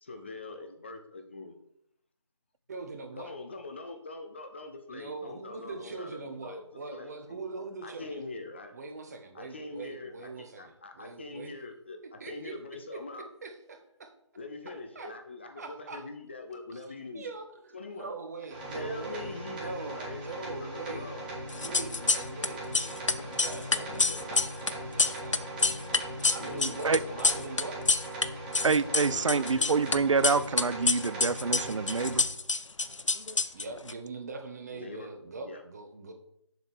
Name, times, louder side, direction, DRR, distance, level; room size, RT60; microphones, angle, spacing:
voice 1, 0.0-1.6 3.2-6.6 6.9-7.5 7.8-8.7 9.3-13.3 14.4-17.2 17.7-18.1 18.7-21.3 23.6-24.3 26.4-27.3 29.1-29.7 34.7-35.1 35.4-35.6, left 3 dB, 25° left, 0.5 m, -43 dB
voice 2, 2.7-3.3 4.9-8.2 8.7-11.5 12.0-12.6 12.9-13.0 13.4-14.1 14.9-15.1 15.6-16.0 16.7-16.8 17.1-25.8 26.2-27.8 33.5-36.1, right 3 dB, 35° right, 1.0 m, -42 dB
sound 1, 18.5-32.2, right 1 dB, 20° right, 1.6 m, -40 dB
sound 2, 21.5-22.5 22.7-28.3 28.5-30.0 30.2-33.9, left 3 dB, 85° left, 0.6 m, -27 dB
voice 3, 28.6-32.2, right 5 dB, 80° right, 0.4 m, -27 dB
7.0 x 3.8 x 6.2 m
figure-of-eight pair, 155°, 16 cm